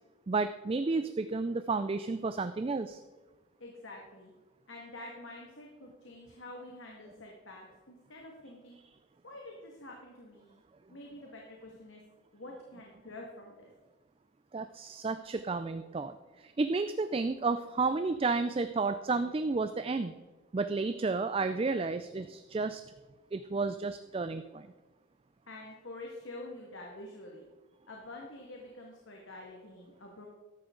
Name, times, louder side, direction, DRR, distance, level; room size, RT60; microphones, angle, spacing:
voice 1, 0.3-3.0 14.5-20.1 20.5-22.8 23.3-24.7, right 3 dB, 25° right, 11 dB, 0.3 m, -32 dB
voice 2, 3.6-4.3 4.7-8.8 9.2-10.6 10.9-12.0 12.3-13.7 25.5-27.4 27.9-30.3, left 2 dB, 70° left, -1 dB, 1.8 m, -47 dB
14.0 x 11.5 x 3.8 m, 1.2 s
head